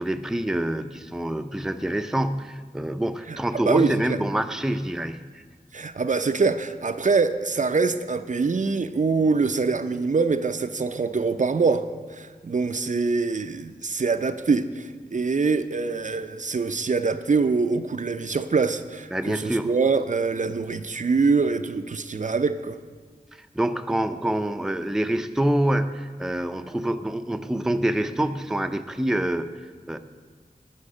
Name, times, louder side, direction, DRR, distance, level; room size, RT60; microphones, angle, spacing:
voice 1, 0.0-5.4 19.1-19.7 23.3-29.5 29.9-30.0, right 1 dB, 5° right, 8 dB, 0.5 m, -26 dB
voice 2, 3.6-4.2 5.7-22.8, right 4 dB, 55° right, 9 dB, 0.5 m, -24 dB
11.5 x 5.8 x 8.5 m, 1.5 s
wide cardioid pair, 65°, 15 cm